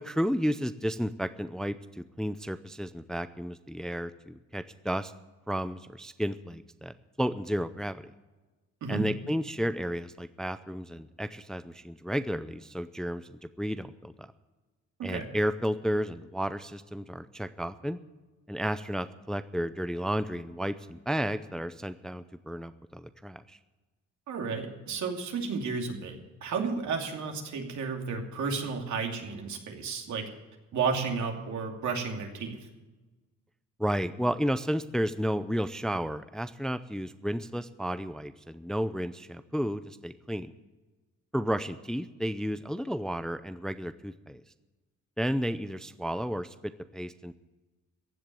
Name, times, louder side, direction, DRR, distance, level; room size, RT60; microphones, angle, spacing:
voice 1, 0.0-5.1 5.5-8.1 8.9-14.3 15.0-18.0 18.5-23.6 33.8-40.5 41.3-44.4 45.2-47.4, equal, ahead, 12 dB, 0.5 m, -32 dB
voice 2, 15.0-15.3 24.3-30.3 30.7-32.6, right 5 dB, 70° right, 2 dB, 2.7 m, -32 dB
15.5 x 7.7 x 9.1 m, 1.2 s
cardioid pair, 90°, 30 cm